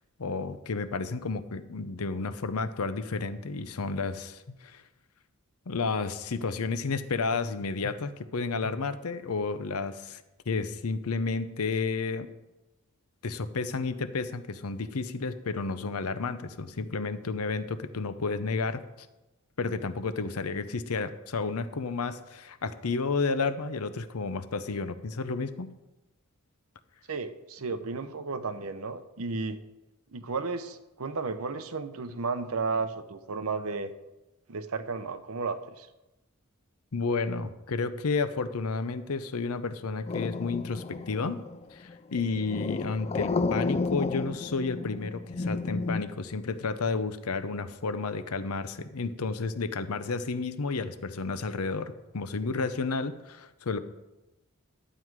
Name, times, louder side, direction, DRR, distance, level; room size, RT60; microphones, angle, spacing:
voice 1, 0.2-4.8 5.7-12.3 13.2-18.8 19.6-25.7 36.9-41.4 41.7-53.8, left 4 dB, 90° left, 12 dB, 0.7 m, -31 dB
voice 2, 27.1-29.6 30.1-33.9 34.5-35.9, right 4 dB, 75° right, 11 dB, 0.8 m, -33 dB
sound 1, 40.1-46.0, left 3 dB, 30° left, 0.3 m, -32 dB
11.5 x 7.5 x 4.7 m, 1.0 s
head